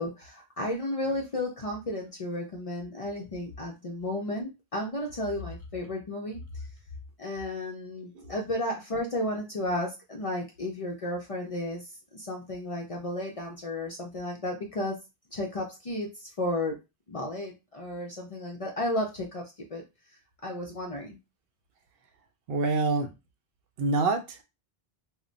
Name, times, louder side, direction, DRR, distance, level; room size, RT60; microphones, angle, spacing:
voice 1, 0.0-6.7 7.2-15.0 15.3-16.8 17.1-19.8 20.4-21.2, left 1 dB, 50° left, 0.4 m, -33 dB
voice 2, 22.5-23.1 23.8-24.4, right 3 dB, 70° right, 0.7 m, -26 dB
2.1 x 2.1 x 3.8 m
omnidirectional pair, 1.0 m